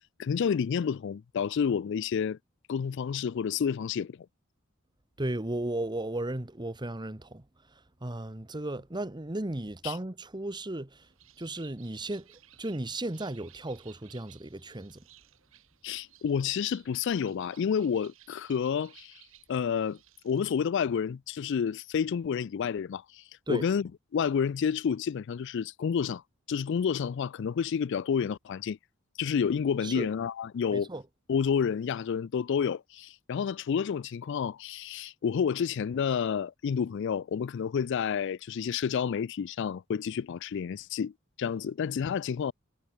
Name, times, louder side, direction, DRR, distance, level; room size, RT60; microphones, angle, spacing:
voice 1, 0.2-2.4 2.7-4.2 9.8-10.0 15.8-19.2 19.5-20.0 20.2-26.2 26.5-28.8 29.2-30.9 31.3-41.1 41.4-42.5, left 7 dB, 60° left, 0.4 m, -30 dB
voice 2, 5.2-7.5 7.7-11.1 11.4-15.0 23.5-23.6 29.8-30.1 30.7-31.0, right 1 dB, 20° right, 1.2 m, -35 dB
Bird, 11.0-20.7, right 13 dB, 70° right, 3.0 m, -58 dB
head